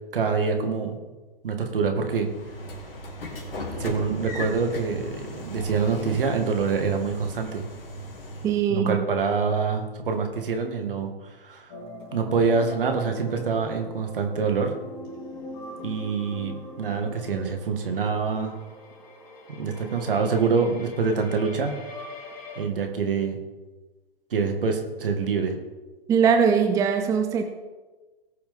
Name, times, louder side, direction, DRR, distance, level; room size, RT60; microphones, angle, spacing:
voice 1, 0.1-1.0 1.4-2.3 3.8-7.6 8.7-11.1 11.4-11.7 12.1-14.7 15.8-18.6 19.5-21.7 22.6-23.4 24.3-25.5, right 5 dB, 65° right, 4 dB, 2.2 m, -25 dB
Train / Sliding door, 2.1-8.7, equal, 70° left, 2.8 m, -37 dB
voice 2, 8.4-9.0 26.1-27.4, right 6 dB, 10° right, 6 dB, 0.6 m, -21 dB
sound 1, 11.7-22.6, left 1 dB, 35° left, 4.2 m, -42 dB
19.0 x 7.2 x 3.8 m, 1.2 s
figure-of-eight pair, 120°, 29 cm